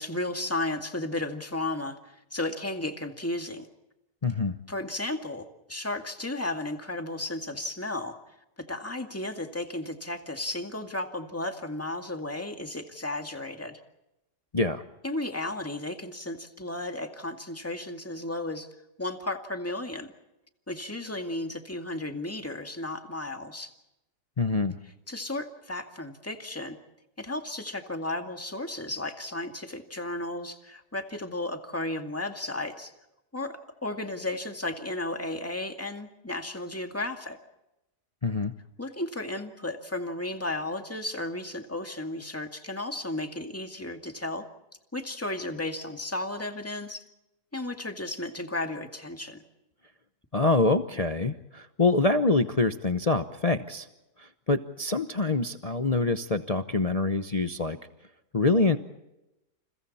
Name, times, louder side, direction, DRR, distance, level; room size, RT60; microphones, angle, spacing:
voice 1, 0.0-3.7 4.7-8.2 8.7-13.8 15.0-18.7 19.0-20.1 20.7-23.7 25.1-26.8 27.2-32.9 33.3-33.5 33.8-37.4 38.8-44.5 44.9-47.0 47.5-49.4, left 2 dB, 10° left, 5 dB, 2.1 m, -34 dB
voice 2, 4.2-4.5 14.5-14.8 24.4-24.8 38.2-38.5 50.3-53.9 54.2-57.8 58.3-58.8, left 3 dB, 30° left, 8 dB, 0.8 m, -25 dB
29.5 x 29.5 x 4.3 m, 0.92 s
omnidirectional pair, 1.6 m